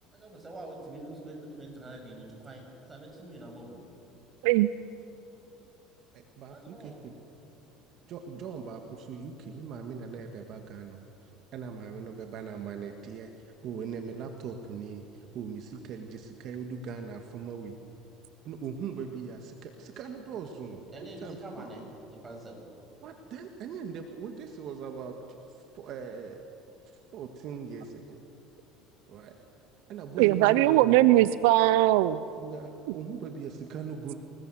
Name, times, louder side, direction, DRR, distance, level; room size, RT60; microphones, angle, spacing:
voice 1, 0.1-3.8 6.5-7.1 20.9-21.8 22.1-22.6, right 1 dB, 20° right, 1 dB, 7.6 m, -45 dB
voice 2, 6.1-7.1 8.1-17.8 18.5-21.4 23.0-25.2 25.5-26.4 27.1-28.2 29.1-29.4 29.9-31.0 32.3-34.1, right 6 dB, 55° right, 4 dB, 1.9 m, -40 dB
voice 3, 30.2-32.2, right 16 dB, 80° right, 15 dB, 0.5 m, -20 dB
26.5 x 20.5 x 7.9 m, 2.9 s
supercardioid pair, 110°, 0 cm